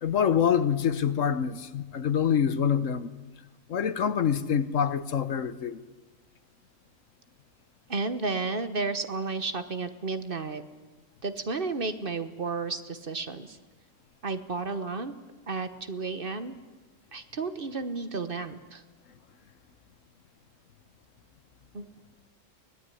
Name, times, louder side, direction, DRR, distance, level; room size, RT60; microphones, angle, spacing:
voice 1, 0.0-3.1 3.7-5.8, left 8 dB, 70° left, 1.3 m, -26 dB
voice 2, 7.9-10.6 11.2-13.6 14.2-15.1 15.5-16.5 17.1-18.8 21.7-21.9, right 3 dB, 45° right, 1.3 m, -32 dB
23.5 x 18.0 x 9.9 m
omnidirectional pair, 1.4 m